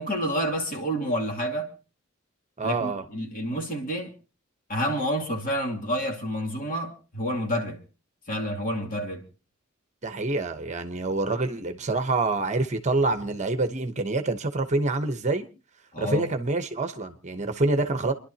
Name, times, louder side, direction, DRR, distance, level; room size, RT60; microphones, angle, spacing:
voice 1, 0.0-1.7 2.6-4.1 4.7-7.8 8.3-9.2 15.9-16.3, equal, 45° left, 2.6 m, -29 dB
voice 2, 2.6-3.0 10.0-15.5 16.0-18.1, right 2 dB, 35° right, 1.0 m, -26 dB
29.5 x 11.5 x 2.8 m
head